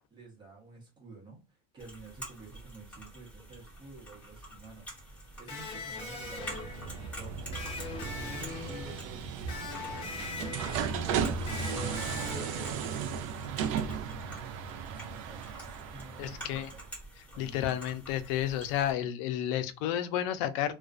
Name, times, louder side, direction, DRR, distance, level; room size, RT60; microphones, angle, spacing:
voice 1, 0.1-14.2 14.8-16.9 17.3-18.0, right 3 dB, 25° right, 0.9 m, -50 dB
sound 1, 1.8-18.9, right 1 dB, 10° left, 1.3 m, -48 dB
Electric guitar, 5.5-13.2, left 4 dB, 35° left, 0.7 m, -42 dB
sound 2, 6.1-16.8, right 7 dB, 90° right, 0.4 m, -36 dB
voice 2, 16.2-16.7 17.4-20.7, left 11 dB, 80° left, 0.4 m, -31 dB
2.4 x 2.2 x 2.4 m
cardioid pair, 150°, 16 cm